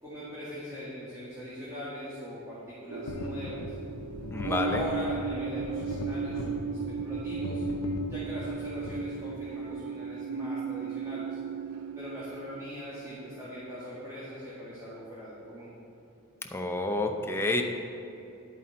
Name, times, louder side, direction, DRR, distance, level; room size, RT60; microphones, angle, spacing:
voice 1, 0.0-3.6 4.4-7.6 8.1-11.4 12.0-15.7, equal, 15° right, -10 dB, 2.1 m, -40 dB
sound 1, 2.9-13.8, right 6 dB, 85° right, 0.4 m, -37 dB
sound 2, 3.1-9.7, left 2 dB, 85° left, 0.6 m, -38 dB
voice 2, 4.3-4.8 16.5-17.6, left 2 dB, 10° left, 3 dB, 0.7 m, -29 dB
11.5 x 8.3 x 4.2 m, 2.9 s
head